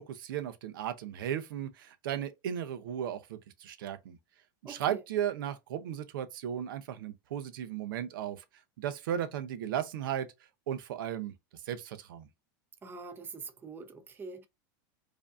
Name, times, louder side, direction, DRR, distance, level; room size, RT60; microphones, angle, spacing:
voice 1, 0.0-4.2 4.6-8.4 8.8-10.3 10.7-11.3 11.7-12.3, right 10 dB, 85° right, 0.7 m, -35 dB
voice 2, 4.6-5.0 12.8-14.5, right 4 dB, 20° right, 0.6 m, -44 dB
4.9 x 2.7 x 2.4 m
supercardioid pair, 135°, 11 cm